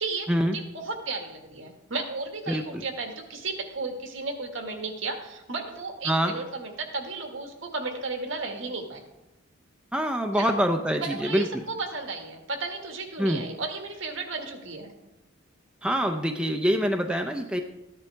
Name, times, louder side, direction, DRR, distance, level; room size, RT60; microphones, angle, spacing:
voice 1, 0.0-9.0 10.3-10.6 10.9-14.9, right 3 dB, 65° right, 4 dB, 1.7 m, -34 dB
voice 2, 9.9-11.5 13.2-13.4 15.8-17.6, equal, 5° right, 4 dB, 0.5 m, -25 dB
14.0 x 9.9 x 3.4 m, 0.93 s
head